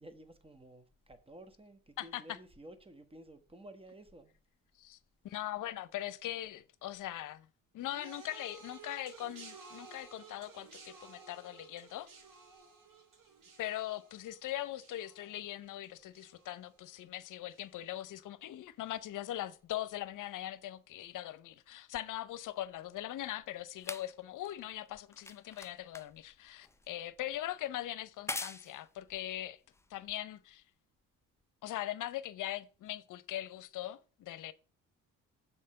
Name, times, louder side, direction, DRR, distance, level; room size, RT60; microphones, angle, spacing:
voice 1, 0.0-4.3, right 1 dB, 15° right, 1.2 m, -53 dB
voice 2, 2.0-2.4 4.8-5.0 5.2-7.5 7.7-12.1 13.6-29.6 29.9-30.6 31.6-34.5, left 13 dB, 65° left, 0.8 m, -41 dB
sound 1, 7.8-17.2 17.5-18.0 18.9-19.0, right 4 dB, 70° right, 3.0 m, -55 dB
sound 2, 21.9-30.6 31.4-31.5, left 2 dB, 10° left, 0.5 m, -47 dB
6.6 x 4.4 x 6.4 m
supercardioid pair, 75°, 33 cm